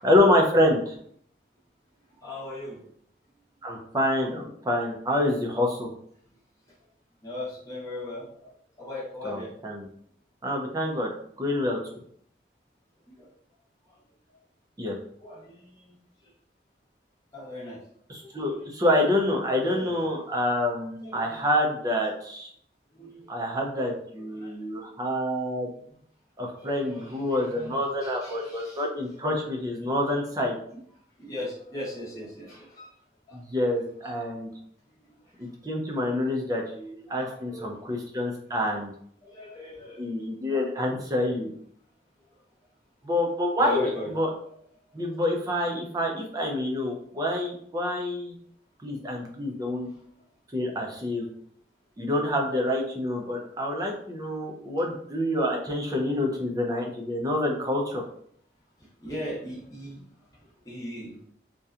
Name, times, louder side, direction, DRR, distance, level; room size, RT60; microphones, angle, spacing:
voice 1, 0.0-1.0 3.6-5.9 9.2-9.4 9.6-9.8 10.4-11.1 11.4-11.8 14.8-15.0 18.1-22.5 23.3-25.7 26.4-30.6 33.3-34.5 35.4-38.9 40.0-41.5 43.0-43.9 44.2-44.3 44.9-48.3 48.8-49.9 50.5-51.3 52.0-58.0, left 1 dB, 20° right, 0 dB, 0.4 m, -27 dB
voice 2, 2.1-2.8 6.3-6.4 6.7-6.8 7.2-8.5 8.8-9.5 13.1-13.3 13.8-14.4 15.2-16.3 17.3-17.9 18.2-18.7 19.5-20.1 20.4-20.6 21.0-21.4 22.9-23.3 24.2-24.7 26.4-28.8 29.8-29.9 30.7-30.8 31.2-32.9 33.3-33.4 35.0-35.5 36.2-36.6 37.0-37.8 39.2-40.1 40.5-40.7 42.3-42.4 43.5-44.1 44.4-44.5 44.9-45.1 49.8-50.0 58.8-60.1 60.4-61.2, left 1 dB, 20° left, -7 dB, 0.8 m, -39 dB
2.7 x 2.2 x 2.4 m, 0.64 s
head